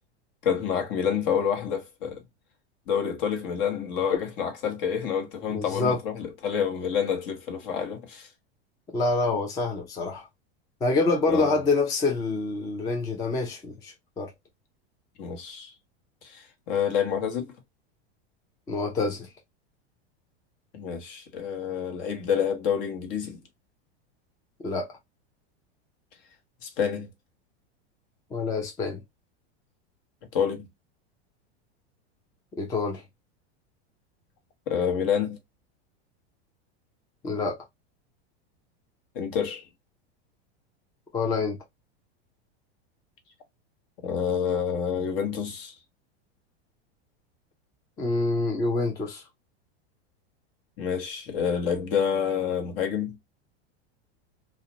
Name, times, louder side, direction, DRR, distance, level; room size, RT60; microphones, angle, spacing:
voice 1, 0.4-2.2 2.9-8.3 11.3-11.6 15.2-15.7 16.2-17.5 20.7-23.4 26.6-27.1 30.3-30.7 34.7-35.4 39.1-39.6 44.0-45.7 50.8-53.2, left 7 dB, 55° left, 1.0 m, -28 dB
voice 2, 5.5-6.0 8.9-10.3 10.8-14.3 18.7-19.3 24.6-24.9 28.3-29.0 32.6-33.0 37.2-37.6 41.1-41.6 48.0-49.2, left 3 dB, 10° left, 0.3 m, -26 dB
2.4 x 2.1 x 2.8 m
supercardioid pair, 140°, 32 cm